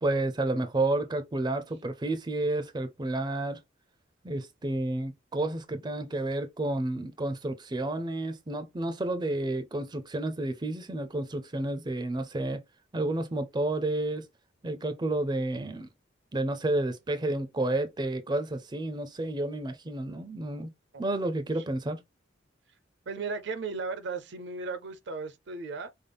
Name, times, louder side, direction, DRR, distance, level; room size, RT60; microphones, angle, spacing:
voice 1, 0.0-3.6 4.2-12.6 12.9-14.3 14.6-15.9 16.3-20.7 21.0-22.0, right 2 dB, 25° right, 0.5 m, -30 dB
voice 2, 23.1-25.9, right 4 dB, 65° right, 0.6 m, -36 dB
5.4 x 2.0 x 3.4 m
head